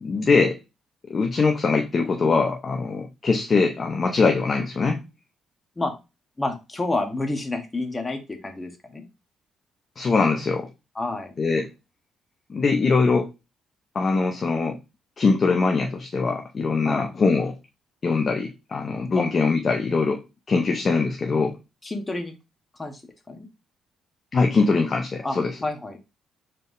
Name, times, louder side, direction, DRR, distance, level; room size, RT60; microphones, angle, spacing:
voice 1, 0.0-0.6 1.1-5.1 10.0-10.7 11.4-11.7 12.5-13.3 13.9-14.8 15.2-17.6 18.0-20.2 20.5-21.6 24.3-25.6, left 4 dB, 40° left, 3 dB, 0.6 m, -22 dB
voice 2, 6.4-9.0 11.0-11.3 16.8-17.1 19.2-19.3 21.8-22.3 22.8-23.0 23.3-23.5 25.2-25.4 25.6-26.0, left 2 dB, 20° left, 5 dB, 1.1 m, -29 dB
4.3 x 3.5 x 2.6 m, 0.25 s
cardioid pair, 90°, 0 cm